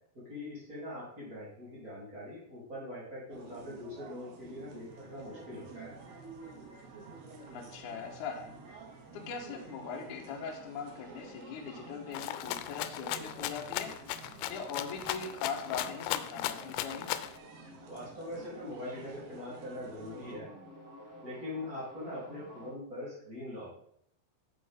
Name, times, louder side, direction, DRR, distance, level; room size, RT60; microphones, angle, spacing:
voice 1, 0.1-6.0 17.9-20.5 21.2-23.8, left 1 dB, 25° right, -7 dB, 3.2 m, -42 dB
sound 1, 3.3-20.4, right 4 dB, 75° right, 3.1 m, -52 dB
sound 2, 4.9-22.7, right 2 dB, 40° right, 2.6 m, -53 dB
voice 2, 7.5-8.5 9.1-13.9 14.5-17.1, left 5 dB, 65° left, 1 dB, 2.2 m, -40 dB
Rattle (instrument), 12.1-17.4, left 13 dB, 90° left, 2.6 m, -36 dB
8.4 x 7.8 x 3.6 m, 0.67 s
omnidirectional pair, 4.6 m